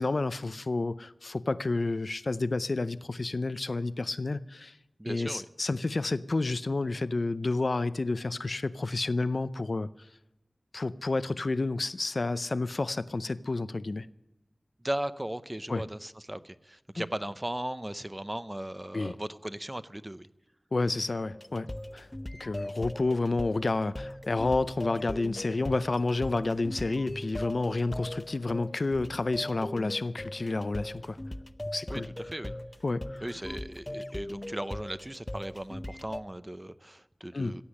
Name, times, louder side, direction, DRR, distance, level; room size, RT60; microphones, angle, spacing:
voice 1, 0.0-4.7 5.1-9.9 10.7-14.1 15.7-15.8 17.0-17.1 18.9-19.1 20.7-21.7 21.9-22.1 22.4-31.2 31.7-32.1 32.8-33.2 37.3-37.5, left 3 dB, 65° left, 0.6 m, -30 dB
voice 2, 5.0-5.5 14.8-20.3 31.9-32.5 33.2-37.6, right 1 dB, 20° right, 0.7 m, -37 dB
sound 1, 21.3-36.2, left 1 dB, 25° left, 0.6 m, -40 dB
16.0 x 8.4 x 9.7 m
wide cardioid pair, 65°, 0 cm